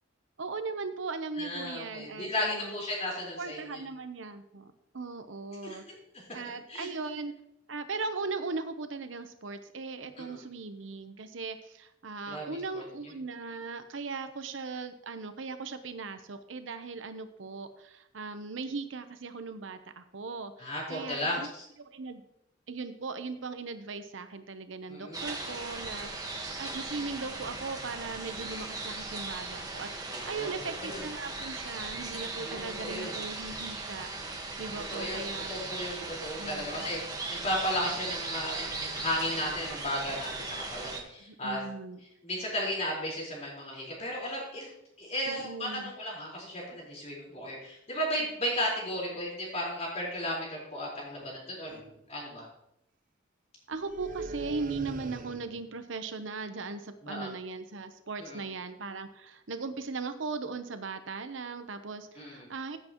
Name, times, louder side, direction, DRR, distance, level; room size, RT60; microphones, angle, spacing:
voice 1, 0.4-2.7 3.4-5.8 6.3-7.3 7.7-21.5 21.8-22.2 22.7-34.1 34.6-35.6 36.4-36.8 41.3-42.0 45.2-45.9 53.7-62.8, right 4 dB, 75° right, 9 dB, 0.9 m, -38 dB
voice 2, 1.4-3.8 5.6-5.8 6.7-6.9 10.2-10.4 12.3-12.8 20.6-21.6 24.9-25.3 30.1-31.0 32.4-33.2 34.9-41.6 42.2-44.7 45.0-51.8 52.1-52.5 57.0-57.3 58.2-58.4 62.2-62.5, equal, 35° left, -4 dB, 4.4 m, -35 dB
sound 1, 25.1-41.0, right 3 dB, 20° right, 1.5 m, -38 dB
sound 2, 51.2-51.4 51.7-52.0 53.7-55.7, right 3 dB, 45° right, 0.6 m, -41 dB
15.5 x 7.8 x 3.1 m, 0.80 s
head